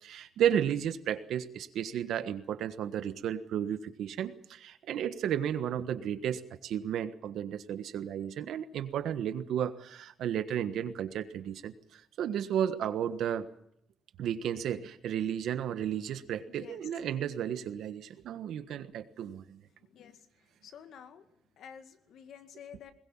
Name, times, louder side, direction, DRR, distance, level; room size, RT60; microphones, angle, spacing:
voice 1, 0.0-13.5 14.2-19.6, right 9 dB, 70° right, 11 dB, 1.4 m, -33 dB
voice 2, 16.5-16.9 19.8-20.3 20.6-21.2 21.6-22.9, left 8 dB, 65° left, 8 dB, 2.0 m, -50 dB
21.0 x 21.0 x 7.3 m, 0.74 s
cardioid pair, 165°, 0 cm